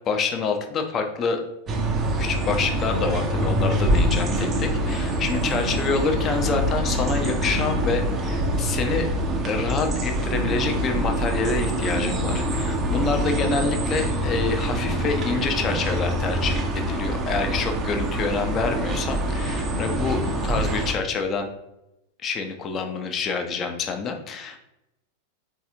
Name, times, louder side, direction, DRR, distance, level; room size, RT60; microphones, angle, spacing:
voice 1, 0.1-1.4 2.2-9.1 9.4-21.5 22.2-24.6, left 4 dB, 30° left, 5 dB, 0.5 m, -27 dB
sound 1, 1.7-20.9, right 1 dB, 25° right, 0.6 m, -25 dB
3.9 x 2.7 x 2.7 m, 0.88 s
figure-of-eight pair, 90°, 0 cm